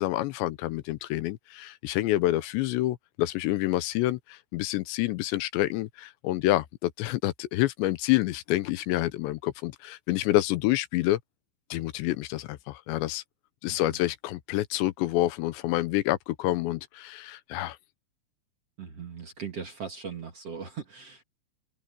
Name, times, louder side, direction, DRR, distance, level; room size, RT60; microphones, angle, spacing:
voice 1, 0.0-11.2 11.7-13.2 13.6-17.8, left 16 dB, 85° left, 3.0 m, -28 dB
voice 2, 13.7-14.0 18.8-21.2, right 6 dB, 45° right, 2.4 m, -39 dB
open air
omnidirectional pair, 5.1 m